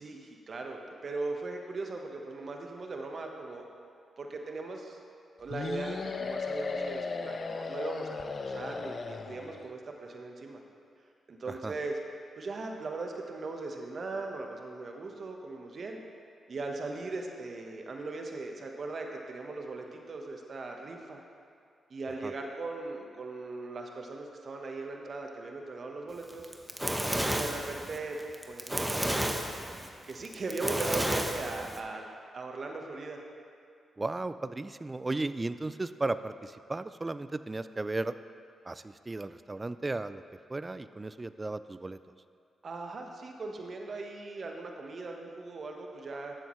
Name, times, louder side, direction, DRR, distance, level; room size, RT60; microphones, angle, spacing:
voice 1, 0.0-3.6 4.2-5.0 5.4-10.6 11.3-12.0 12.3-16.0 16.5-21.2 21.9-26.5 27.4-28.2 28.5-29.5 30.1-32.0 32.3-33.2 42.6-46.3, right 3 dB, 55° right, 2 dB, 1.2 m, -39 dB
sound 1, 5.5-9.7, left 4 dB, 50° left, 0.5 m, -36 dB
Fire, 26.3-31.8, right 1 dB, 10° right, 0.9 m, -31 dB
voice 2, 34.0-38.1 38.7-40.2 40.5-42.0, right 2 dB, 25° right, 13 dB, 0.4 m, -35 dB
12.0 x 7.7 x 3.2 m, 2.3 s
supercardioid pair, 55°, 0 cm